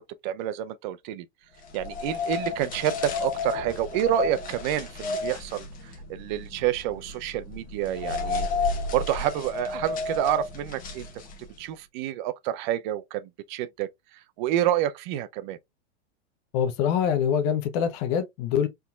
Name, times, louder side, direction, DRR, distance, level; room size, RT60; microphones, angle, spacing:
voice 1, 0.2-1.2 1.7-5.7 6.1-8.5 8.9-11.1 11.6-13.9 14.4-15.6, right 12 dB, 45° right, 0.6 m, -28 dB
sound 1, 1.6-11.6, left 4 dB, 25° left, 1.1 m, -32 dB
voice 2, 16.5-18.7, left 8 dB, 40° left, 0.8 m, -24 dB
4.5 x 3.8 x 2.3 m
supercardioid pair, 140°, 35 cm